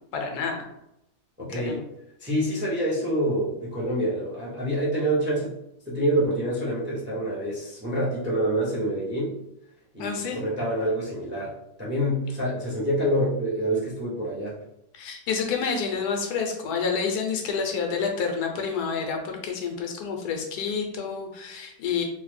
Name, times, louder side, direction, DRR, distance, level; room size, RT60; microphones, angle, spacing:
voice 1, 0.1-0.6 1.5-1.8 10.0-10.4 14.9-22.0, left 5 dB, 85° left, 3 dB, 1.2 m, -29 dB
voice 2, 1.4-1.8 2.2-5.5 5.9-9.3 9.9-11.5 11.8-14.5, right 1 dB, 15° right, -6 dB, 0.3 m, -26 dB
3.1 x 2.1 x 3.2 m, 0.80 s
omnidirectional pair, 1.6 m